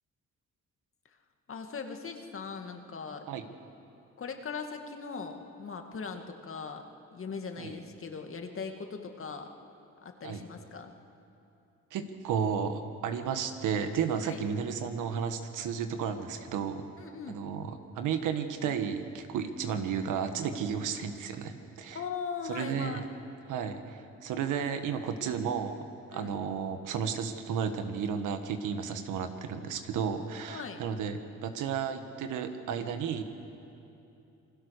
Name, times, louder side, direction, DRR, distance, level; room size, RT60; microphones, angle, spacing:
voice 1, 1.5-3.3 4.2-6.8 7.1-9.5 10.0-10.9 14.2-14.4 17.0-17.4 21.9-23.0 26.1-26.3 30.4-30.8, left 5 dB, 45° left, 4 dB, 2.3 m, -39 dB
voice 2, 11.9-16.9 17.3-22.0 22.5-23.0 23.5-25.8 26.1-33.2, right 7 dB, 85° right, 7 dB, 1.7 m, -33 dB
27.5 x 20.5 x 6.6 m, 2.8 s
cardioid pair, 90°, 30 cm